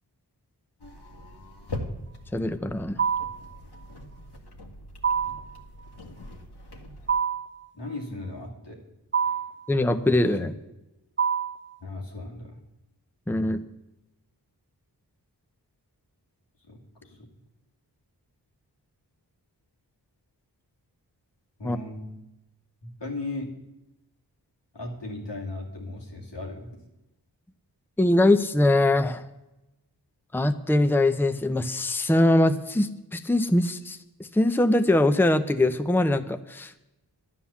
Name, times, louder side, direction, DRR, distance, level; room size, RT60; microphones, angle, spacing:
sound 1, 0.8-7.2, left 1 dB, 65° left, 1.8 m, -41 dB
voice 1, 2.3-3.0 9.7-10.5 13.3-13.6 21.6-21.8 28.0-29.2 30.3-36.8, left 1 dB, 5° left, 10 dB, 0.7 m, -22 dB
sound 2, 3.0-3.5 5.0-5.5 7.1-7.6 9.1-9.6 11.2-11.7, right 7 dB, 25° right, 0.8 m, -26 dB
voice 2, 7.7-8.8 9.2-9.4 10.4-10.5 11.8-12.6 16.7-17.3 21.6-22.1 22.8-23.5 24.7-26.8, left 2 dB, 90° left, -1 dB, 2.6 m, -37 dB
11.5 x 9.3 x 7.1 m, 0.93 s
wide cardioid pair, 50°, 42 cm